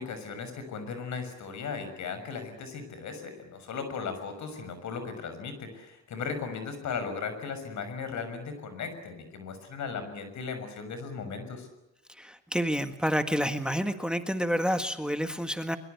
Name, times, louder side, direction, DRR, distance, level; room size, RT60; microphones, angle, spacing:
voice 1, 0.0-11.7, left 5 dB, 70° left, 9 dB, 6.4 m, -37 dB
voice 2, 12.1-15.8, equal, 5° right, 8 dB, 1.7 m, -29 dB
24.0 x 23.0 x 8.3 m, 0.96 s
cardioid pair, 90°, 30 cm